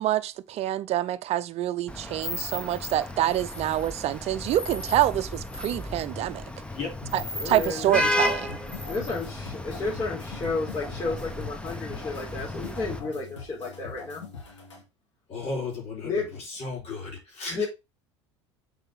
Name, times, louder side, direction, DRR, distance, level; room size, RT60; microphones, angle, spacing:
voice 1, 0.0-6.4 7.1-8.6, right 13 dB, 45° right, 0.7 m, -26 dB
Vehicle horn car horn honking / Traffic noise roadway noise, 1.9-13.0, left 1 dB, 5° left, 1.2 m, -34 dB
sound 1, 7.0-14.8, left 5 dB, 85° left, 2.3 m, -43 dB
voice 2, 7.3-8.0 8.9-14.2 16.0-16.3 17.5-17.7, left 3 dB, 30° left, 3.9 m, -32 dB
voice 3, 15.3-17.7, left 3 dB, 45° left, 4.0 m, -35 dB
6.7 x 5.1 x 3.8 m
hypercardioid pair, 75°, 15 cm